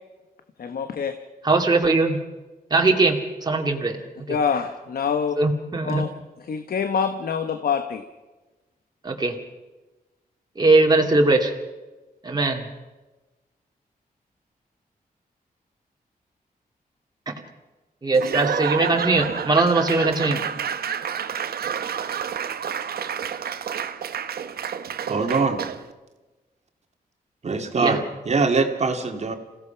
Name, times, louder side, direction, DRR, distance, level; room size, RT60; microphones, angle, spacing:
voice 1, 0.6-1.1 4.3-5.3 5.8-6.1 6.5-8.0, left 6 dB, 75° left, 1.2 m, -25 dB
voice 2, 1.4-2.2 2.7-4.4 5.4-6.0 9.0-9.4 10.6-11.5 12.2-12.7 17.3-17.4 18.0-20.4 27.8-28.0, right 3 dB, 25° right, 2.4 m, -20 dB
Laughter / Applause / Crowd, 18.1-25.9, right 8 dB, 85° right, 1.0 m, -29 dB
voice 3, 25.1-25.6 27.4-28.0 28.3-29.4, right 4 dB, 45° right, 2.1 m, -22 dB
27.5 x 16.5 x 5.8 m
wide cardioid pair, 120°, 16 cm